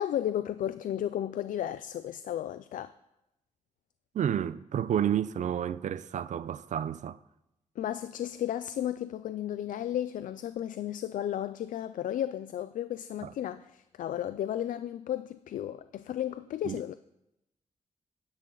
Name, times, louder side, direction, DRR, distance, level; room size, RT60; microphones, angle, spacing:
voice 1, 0.0-2.9 7.8-16.9, left 11 dB, 90° left, 0.4 m, -34 dB
voice 2, 4.1-7.2 13.2-13.3 16.6-16.8, right 9 dB, 65° right, 0.5 m, -30 dB
15.0 x 10.5 x 3.9 m
wide cardioid pair, 115°, 13 cm